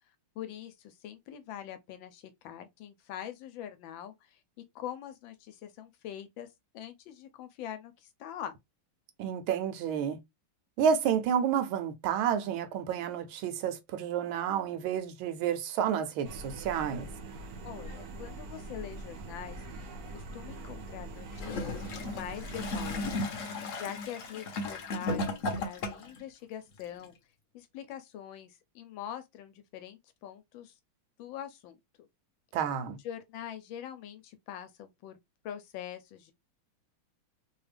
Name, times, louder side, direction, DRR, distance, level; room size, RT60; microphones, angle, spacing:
voice 1, 0.4-4.4 4.7-6.5 6.7-8.5 17.6-19.6 20.1-23.2 23.7-27.1 27.5-30.7 31.2-32.1 33.0-35.2 35.4-36.3, left 10 dB, 75° left, 1.2 m, -43 dB
voice 2, 9.2-10.2 10.8-17.1 32.5-33.0, right 8 dB, 85° right, 1.4 m, -30 dB
sound 1, 16.2-23.1, right 2 dB, 70° right, 0.9 m, -43 dB
Gurgling / Toilet flush, 21.3-26.2 27.0-27.1, left 2 dB, 60° left, 0.8 m, -35 dB
3.4 x 2.3 x 3.3 m
omnidirectional pair, 2.2 m